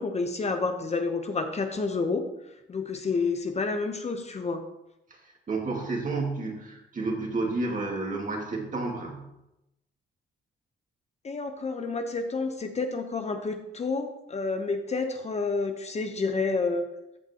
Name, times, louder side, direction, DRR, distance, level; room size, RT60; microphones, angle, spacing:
voice 1, 0.0-4.6 11.2-16.9, left 4 dB, 35° left, 6 dB, 0.9 m, -29 dB
voice 2, 5.2-9.3, right 3 dB, 40° right, 0 dB, 2.3 m, -31 dB
13.5 x 5.8 x 2.9 m, 0.89 s
cardioid pair, 90°, 20 cm